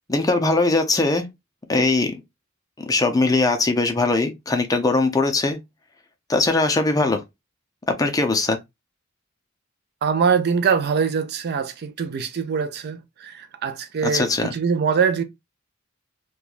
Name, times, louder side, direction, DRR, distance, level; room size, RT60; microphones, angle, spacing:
voice 1, 0.1-1.3 1.7-2.2 2.8-5.6 6.3-7.2 7.9-8.6 14.0-14.5, left 3 dB, 15° left, 0.5 m, -20 dB
voice 2, 10.0-15.2, right 6 dB, 50° right, 0.4 m, -23 dB
3.0 x 2.3 x 2.4 m
head